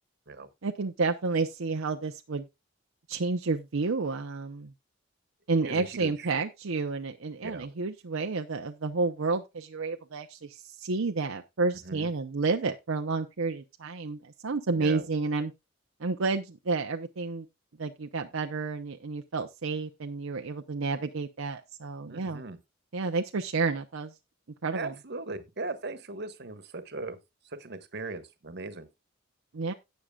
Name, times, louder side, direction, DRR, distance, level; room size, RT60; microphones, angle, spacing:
voice 1, 0.6-2.5 3.1-4.7 5.5-15.5 16.0-17.5 17.8-22.4 22.9-24.1 24.6-24.9 29.5-29.7, right 3 dB, 75° right, 0.7 m, -30 dB
voice 2, 5.6-6.3 7.4-7.7 11.8-12.1 14.7-15.0 22.1-22.6 24.7-27.2 27.4-28.9, right 3 dB, 55° right, 1.3 m, -38 dB
17.5 x 6.5 x 2.3 m
head